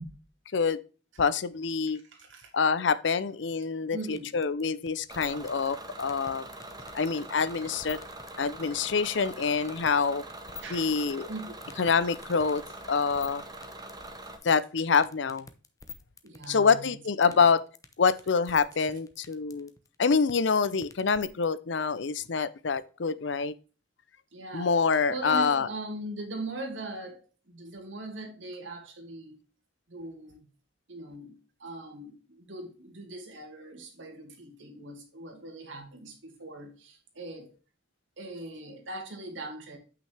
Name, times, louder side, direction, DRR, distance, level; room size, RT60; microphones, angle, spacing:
voice 1, 1.2-2.0 2.5-6.4 6.9-8.0 8.4-10.2 10.7-11.3 11.8-12.6 12.9-13.4 14.4-15.5 16.5-17.6 18.0-19.7 20.0-23.5 24.5-25.7, left 5 dB, 70° left, 0.6 m, -26 dB
voice 2, 2.1-2.5 3.9-4.2 10.6-10.9 11.3-11.5 16.2-17.0 17.2-17.4 24.3-24.7 25.1-29.4 29.9-30.5 30.9-37.5 38.2-39.8, right 2 dB, 90° right, 2.4 m, -40 dB
sound 1, 4.2-21.4, left 5 dB, 20° left, 0.8 m, -46 dB
Bus / Engine, 5.1-14.4, right 1 dB, 20° right, 1.3 m, -43 dB
8.4 x 6.1 x 3.4 m
head